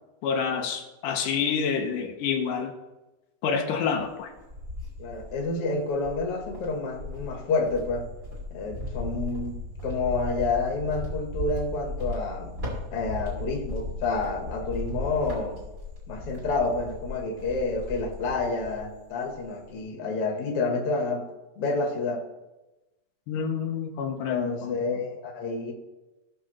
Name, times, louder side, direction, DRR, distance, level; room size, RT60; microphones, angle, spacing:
voice 1, 0.2-2.8 3.4-4.3 23.3-25.0, left 6 dB, 85° left, 3 dB, 2.4 m, -28 dB
Cricket, 4.1-5.5 6.0-18.9 19.2-19.8, left 2 dB, 35° right, 3.8 m, -36 dB
voice 2, 5.0-8.1 8.5-12.5 12.9-15.6 16.1-21.3 21.6-22.2 24.3-25.7, left 3 dB, 55° left, 2 dB, 2.1 m, -29 dB
18.5 x 6.4 x 3.2 m, 1.1 s
omnidirectional pair, 3.7 m